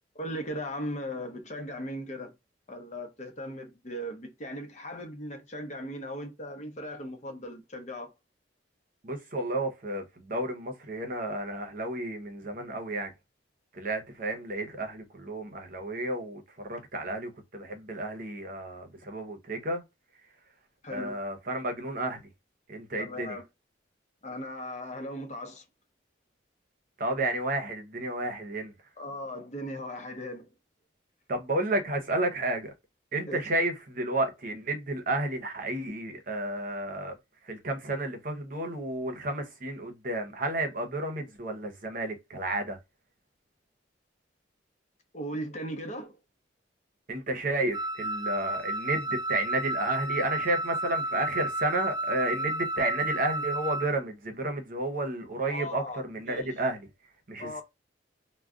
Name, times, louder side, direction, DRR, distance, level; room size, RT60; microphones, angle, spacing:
voice 1, 0.1-2.3 2.7-8.1 20.8-21.2 23.0-23.4 24.2-25.6 29.0-30.5 33.3-33.4 45.1-46.2 55.5-56.0 56.3-56.5 57.4-57.6, equal, 40° left, 0.8 m, -38 dB
voice 2, 9.0-13.1 13.7-19.8 20.9-22.2 22.7-23.4 27.0-28.7 31.3-32.7 33.1-37.2 37.5-42.8 47.1-56.9 57.3-57.6, right 2 dB, 45° right, 0.8 m, -32 dB
Wind instrument woodwind instrument, 47.7-54.0, right 1 dB, 25° right, 0.3 m, -32 dB
2.4 x 2.1 x 3.6 m
head